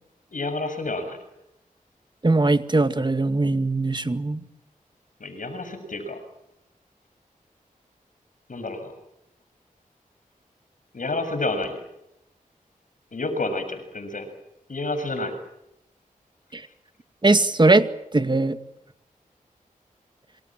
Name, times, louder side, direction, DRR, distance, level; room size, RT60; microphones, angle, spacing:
voice 1, 0.3-1.2 5.2-6.2 8.5-8.9 10.9-11.8 13.1-14.3 14.7-15.3, left 2 dB, 65° left, 8 dB, 7.3 m, -29 dB
voice 2, 2.2-4.4 16.5-16.7 17.2-18.6, right 2 dB, 30° right, 10 dB, 2.2 m, -20 dB
27.0 x 26.0 x 7.6 m, 0.84 s
cardioid pair, 55°, 15 cm